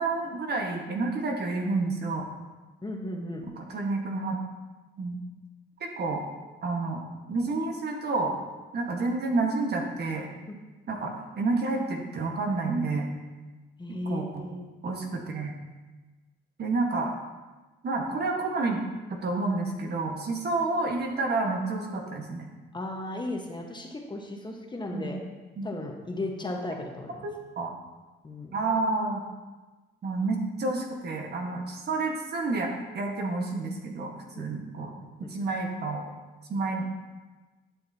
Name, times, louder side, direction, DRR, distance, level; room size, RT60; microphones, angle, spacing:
voice 1, 0.0-2.3 3.4-4.3 5.0-5.2 5.8-6.2 6.6-7.0 7.3-8.3 8.7-10.3 10.9-13.1 13.9-14.5 14.8-15.5 16.6-17.1 17.8-18.8 19.1-22.5 24.9-25.1 25.6-25.7 27.2-27.7 28.5-29.2 30.0-34.9 35.3-36.0 36.5-36.9, right 3 dB, 55° right, 1 dB, 1.4 m, -29 dB
voice 2, 2.8-3.4 10.5-10.6 13.8-14.6 22.7-25.2 25.6-27.3 28.2-28.6 34.3-34.5 34.8-34.9 35.2-35.3, left 2 dB, 20° left, 1 dB, 1.2 m, -35 dB
10.5 x 6.4 x 2.8 m, 1.2 s
cardioid pair, 90°, 20 cm